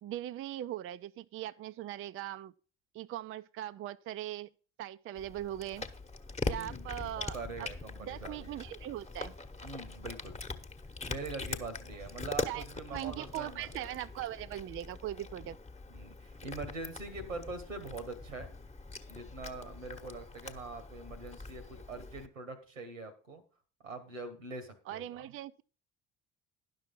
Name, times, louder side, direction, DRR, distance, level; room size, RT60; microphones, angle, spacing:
voice 1, 0.0-2.5 2.9-4.5 4.8-5.9 6.4-7.7 8.0-9.3 12.5-12.6 12.9-15.6 24.9-25.6, right 13 dB, 35° right, 0.4 m, -40 dB
Cat, 5.1-22.3, left 3 dB, 15° left, 1.1 m, -42 dB
voice 2, 6.5-8.6 9.6-10.4 11.1-13.9 15.9-18.5 19.1-23.4 23.8-25.2, right 3 dB, 90° right, 1.4 m, -43 dB
11.0 x 6.2 x 5.3 m
figure-of-eight pair, 50°, 38 cm